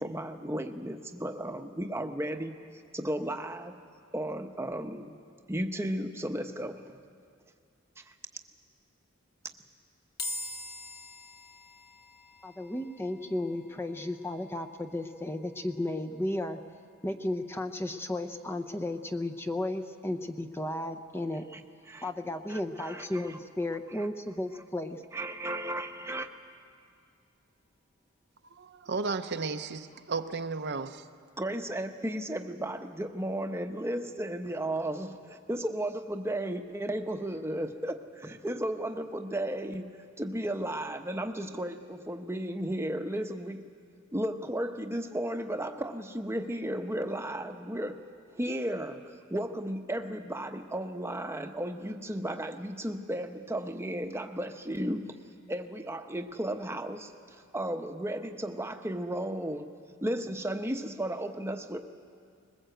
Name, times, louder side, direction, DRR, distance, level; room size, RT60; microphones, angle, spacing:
voice 1, 0.0-2.6 2.9-3.7 4.1-5.2 5.5-7.0 8.0-8.1 21.5-21.6 21.9-22.1 22.5-23.4 23.9-24.1 25.1-26.3 31.4-43.7 44.1-48.0 48.3-55.2 55.5-59.7 60.0-61.8, right 1 dB, 10° right, 0.9 m, -34 dB
sound 1, 10.2-23.5, left 2 dB, 50° left, 1.3 m, -48 dB
voice 2, 12.4-16.6 17.0-21.4 22.0-25.0, left 1 dB, 10° left, 0.7 m, -34 dB
voice 3, 28.5-31.1, right 4 dB, 55° right, 0.7 m, -34 dB
21.0 x 20.5 x 7.9 m
head